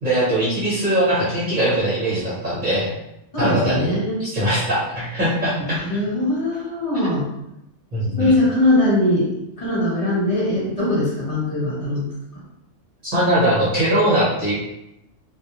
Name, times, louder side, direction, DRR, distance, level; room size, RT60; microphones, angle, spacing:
voice 1, 0.0-2.9 3.4-3.9 4.2-5.8 7.9-8.4 13.0-14.5, right 1 dB, 40° right, -9 dB, 1.1 m, -21 dB
voice 2, 3.3-4.2 5.2-5.3 5.6-7.3 8.2-9.3 9.6-12.1 12.3-12.4, left 1 dB, 30° left, -11 dB, 1.2 m, -21 dB
2.4 x 2.1 x 2.9 m, 0.85 s
omnidirectional pair, 1.3 m